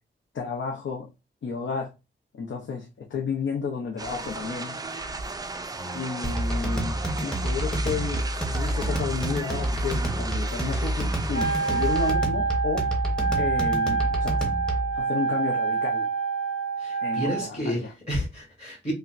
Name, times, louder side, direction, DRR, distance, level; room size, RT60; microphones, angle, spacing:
voice 1, 0.3-1.1 1.4-1.9 2.3-4.8 5.9-13.0 13.3-14.5 14.7-16.1 17.0-17.9, left 5 dB, 75° left, 0.7 m, -32 dB
sound 1, 4.0-12.1, right 3 dB, 20° right, 0.3 m, -35 dB
sound 2, 6.2-15.0, right 1 dB, 5° left, 0.8 m, -28 dB
Wind instrument woodwind instrument, 11.3-17.5, right 5 dB, 50° left, 1.6 m, -27 dB
voice 2, 16.8-18.9, equal, 35° left, 1.8 m, -31 dB
5.5 x 2.2 x 2.4 m
wide cardioid pair, 165°, 20 cm